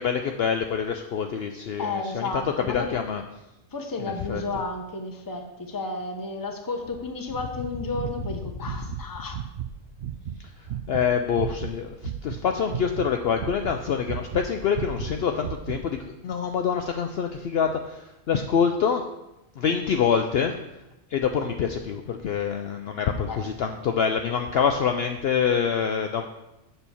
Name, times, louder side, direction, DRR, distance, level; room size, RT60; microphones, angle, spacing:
voice 1, 0.0-2.4 2.7-3.2 4.0-4.4 10.9-19.0 19.6-20.6 21.1-26.3, left 7 dB, 65° left, 5 dB, 0.7 m, -26 dB
voice 2, 1.8-3.0 3.7-9.4 23.3-23.4, left 3 dB, 20° left, 4 dB, 0.8 m, -32 dB
sound 1, 8.0-9.0 9.3-9.7 10.0-12.4 12.7-14.5 14.7-15.8, right 10 dB, 60° right, 0.6 m, -33 dB
7.0 x 4.4 x 6.9 m, 0.93 s
omnidirectional pair, 1.3 m